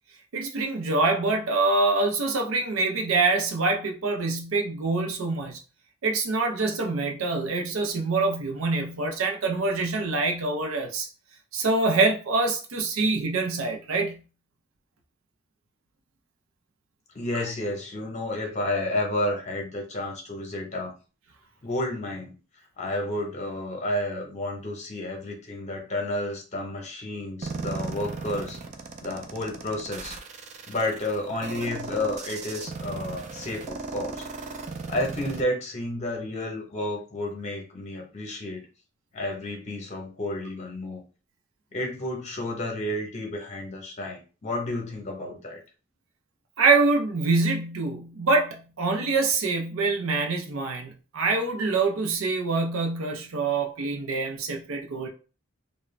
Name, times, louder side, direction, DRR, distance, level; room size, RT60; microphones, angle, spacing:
voice 1, 0.3-5.6 6.0-11.1 11.5-14.2 46.6-55.1, right 3 dB, 90° right, 0.5 m, -25 dB
voice 2, 17.1-20.9 21.6-22.4 22.8-28.6 29.0-30.1 30.7-34.3 34.9-38.6 39.1-41.0 41.7-45.6, left 1 dB, 35° left, 0.8 m, -31 dB
sound 1, 27.4-35.4, right 4 dB, 35° right, 0.3 m, -36 dB
2.4 x 2.1 x 3.1 m
head